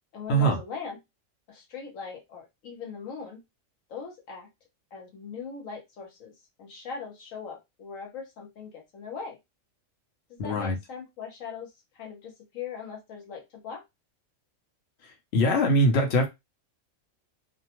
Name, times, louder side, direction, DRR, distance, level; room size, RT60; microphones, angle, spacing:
voice 1, 0.1-1.0 1.5-3.4 3.9-4.5 4.9-6.3 6.6-9.4 10.3-13.8, left 6 dB, 85° left, 1.3 m, -40 dB
voice 2, 10.4-10.8 15.3-16.3, right 1 dB, 60° left, 1.0 m, -22 dB
2.7 x 2.2 x 2.9 m
omnidirectional pair, 1.3 m